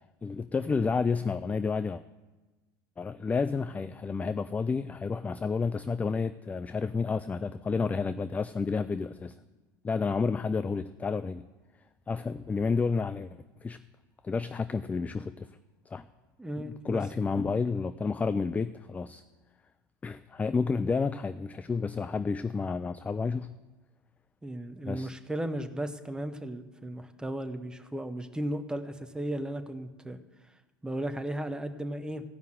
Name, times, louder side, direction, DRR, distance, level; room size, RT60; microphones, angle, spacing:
voice 1, 0.2-2.0 3.0-9.3 9.8-11.4 12.1-13.8 14.2-15.5 15.9-16.0 16.6-19.2 20.0-23.5 24.9-25.1, left 4 dB, 15° left, 12 dB, 0.3 m, -30 dB
voice 2, 16.4-17.0 17.4-17.5 24.4-30.2 30.8-32.2, right 1 dB, 5° right, 7 dB, 0.9 m, -35 dB
16.0 x 5.5 x 7.7 m, 1.2 s
figure-of-eight pair, 80°, 11 cm